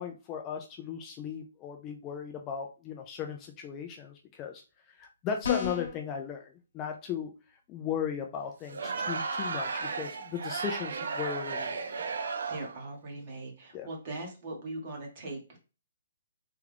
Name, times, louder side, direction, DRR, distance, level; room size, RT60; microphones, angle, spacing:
voice 1, 0.0-4.6 4.9-7.3 7.7-11.9 13.7-13.9, left 7 dB, 20° left, 3 dB, 0.3 m, -37 dB
sound 1, 5.4-6.0, left 7 dB, 60° left, 1.1 m, -31 dB
Crowd, 8.6-12.8, right 4 dB, 70° right, 0.5 m, -34 dB
voice 2, 12.5-15.6, right 2 dB, 30° right, 0 dB, 1.2 m, -40 dB
3.4 x 2.3 x 3.3 m, 0.33 s
hypercardioid pair, 165°, 0 cm